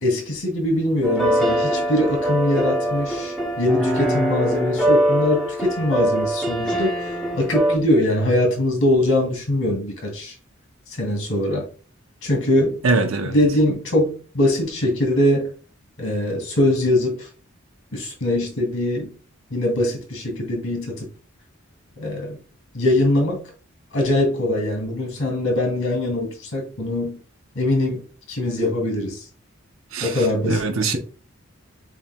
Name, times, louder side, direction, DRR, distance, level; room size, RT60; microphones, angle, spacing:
voice 1, 0.0-7.0 7.3-10.3 10.9-11.7 12.2-12.8 13.2-15.5 16.0-17.3 17.9-19.1 19.5-21.1 22.0-22.4 22.7-23.4 23.9-27.2 27.6-29.2 30.0-31.0, left 1 dB, 80° left, 2.4 m, -22 dB
sound 1, 1.0-7.8, equal, ahead, 1.1 m, -22 dB
voice 2, 12.8-13.3 29.9-30.1 30.4-31.0, right 3 dB, 80° right, 0.8 m, -21 dB
7.3 x 3.1 x 2.3 m
head